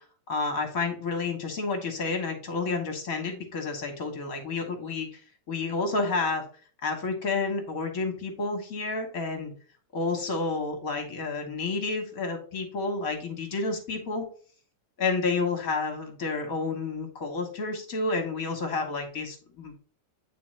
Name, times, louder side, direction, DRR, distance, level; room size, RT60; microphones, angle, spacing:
voice 1, 0.3-5.2 5.5-6.4 6.8-9.5 9.9-14.2 15.0-19.9, left 3 dB, 55° left, 4 dB, 1.6 m, -30 dB
8.5 x 3.9 x 3.2 m, 0.41 s
omnidirectional pair, 1.9 m